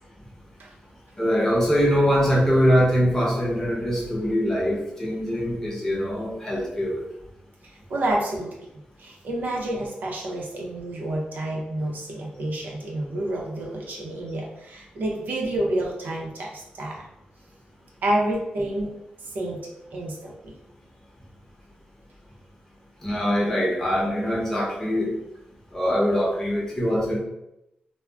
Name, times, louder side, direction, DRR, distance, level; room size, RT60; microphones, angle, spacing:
voice 1, 1.2-7.0 23.0-25.2 25.7-27.2, equal, 15° left, -5 dB, 0.8 m, -23 dB
voice 2, 7.9-8.5 9.0-17.1 18.0-18.9 19.2-20.5, right 1 dB, 65° right, -2 dB, 0.6 m, -29 dB
2.4 x 2.0 x 3.3 m, 0.84 s
wide cardioid pair, 135°, 3 cm